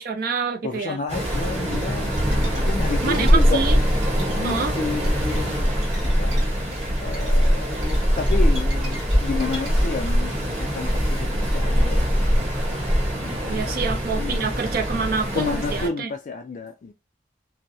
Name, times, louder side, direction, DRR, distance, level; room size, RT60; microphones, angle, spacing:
voice 1, 0.0-1.0 3.0-3.8 4.4-4.7 13.5-16.1, right 5 dB, 55° right, 0.5 m, -27 dB
voice 2, 0.6-2.2 2.5-3.6 4.2-6.4 7.0-12.0 13.2-13.8 14.1-14.6 15.3-16.9, left 4 dB, 50° left, 0.3 m, -31 dB
Waves surf, 1.1-15.9, equal, 40° right, 1.5 m, -22 dB
sound 1, 1.3-11.8, right 1 dB, 85° right, 0.9 m, -43 dB
2.6 x 2.0 x 2.6 m
head